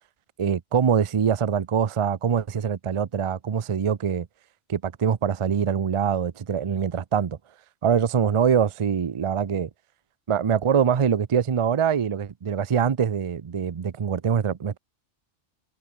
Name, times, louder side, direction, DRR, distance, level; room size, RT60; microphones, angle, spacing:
voice 1, 0.4-4.3 4.7-7.4 7.8-9.7 10.3-14.8, right 7 dB, 40° right, 0.5 m, -24 dB
omnidirectional pair, 1.2 m